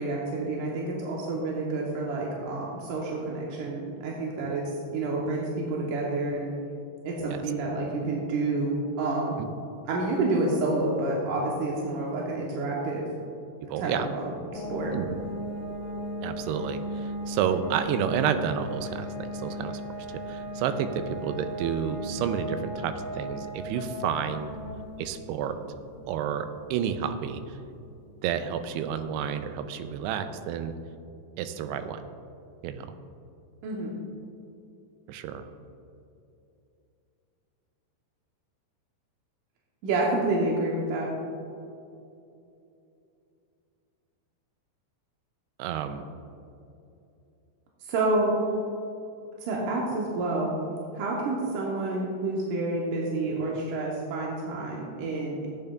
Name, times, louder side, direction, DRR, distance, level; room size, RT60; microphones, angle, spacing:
voice 1, 0.0-6.5 7.0-9.4 9.9-13.1 13.8-14.9 33.6-34.0 39.8-41.1 47.8-48.3 49.4-50.5 50.9-55.5, right 2 dB, 70° right, -3 dB, 2.0 m, -29 dB
voice 2, 13.7-14.1 14.9-15.1 16.2-19.8 20.3-24.5 25.0-25.6 26.1-27.6 28.2-30.7 31.4-32.1 32.6-32.9 35.1-35.5 45.6-46.1, right 8 dB, 90° right, 9 dB, 2.6 m, -30 dB
sound 1, 14.6-29.1, equal, 70° left, 2.7 m, -38 dB
14.0 x 8.8 x 2.3 m, 2.7 s
omnidirectional pair, 4.6 m